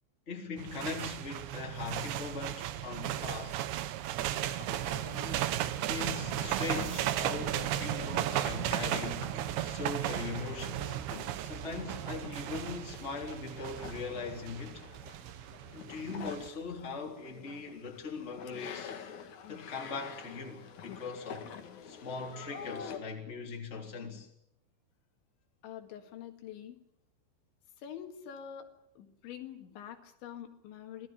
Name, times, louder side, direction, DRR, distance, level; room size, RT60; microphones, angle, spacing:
voice 1, 0.3-3.6 5.9-11.0 11.4-14.9 15.7-18.9 19.5-21.5 21.9-24.3, left 4 dB, 15° left, 3.0 m, -40 dB
sound 1, 0.6-16.5, right 13 dB, 80° right, 3.3 m, -35 dB
sound 2, 4.4-23.0, left 7 dB, 55° left, 2.5 m, -48 dB
voice 2, 25.6-26.8 27.8-28.7 29.0-31.1, left 9 dB, 80° left, 4.2 m, -45 dB
26.0 x 17.5 x 8.8 m
omnidirectional pair, 5.3 m